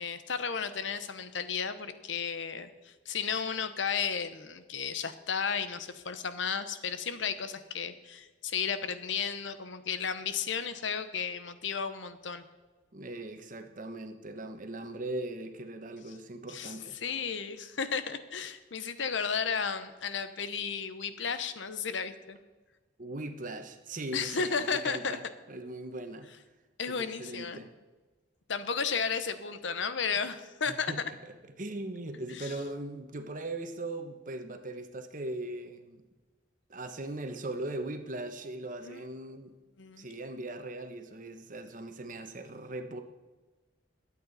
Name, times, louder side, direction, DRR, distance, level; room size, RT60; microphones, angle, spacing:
voice 1, 0.0-12.4 16.5-22.4 24.1-25.2 26.8-27.6 28.5-30.9 32.3-32.5 38.8-39.0 39.8-40.1, left 6 dB, 70° left, 11 dB, 0.9 m, -33 dB
voice 2, 12.9-17.0 23.0-25.2 25.5-26.3 26.9-27.7 30.7-36.0 36.7-39.5 40.0-43.0, right 2 dB, 45° right, 7 dB, 1.1 m, -39 dB
22.0 x 8.6 x 4.2 m, 1.3 s
head